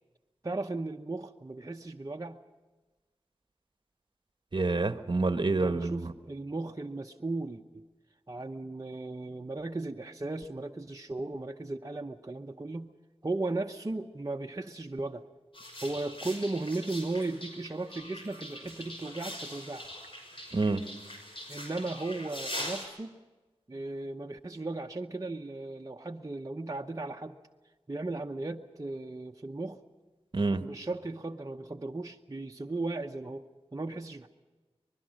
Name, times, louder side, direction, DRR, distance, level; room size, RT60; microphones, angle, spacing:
voice 1, 0.4-2.4 5.6-7.8 8.3-12.9 13.2-15.2 15.8-19.9 21.5-23.1 23.7-27.4 27.9-29.8 30.6-33.4 33.7-34.3, right 2 dB, 35° right, 2 dB, 0.8 m, -36 dB
voice 2, 4.5-6.1 20.5-20.8 30.3-30.6, right 3 dB, 50° right, 9 dB, 1.1 m, -27 dB
sound 1, 15.5-22.9, equal, 60° left, 6.1 m, -42 dB
24.5 x 21.0 x 6.4 m, 1.2 s
wide cardioid pair, 65°, 10 cm